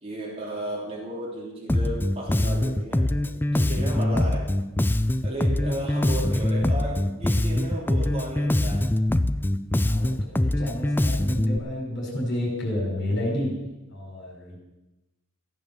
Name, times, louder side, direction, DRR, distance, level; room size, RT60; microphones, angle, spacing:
voice 1, 0.0-4.5 5.2-8.9, right 1 dB, 25° right, -3 dB, 3.2 m, -34 dB
Bass guitar, 1.7-11.6, left 1 dB, 10° left, 0.4 m, -23 dB
voice 2, 9.8-13.5 13.9-14.6, left 1 dB, 50° left, -1 dB, 4.8 m, -30 dB
15.0 x 9.2 x 7.0 m, 0.98 s
head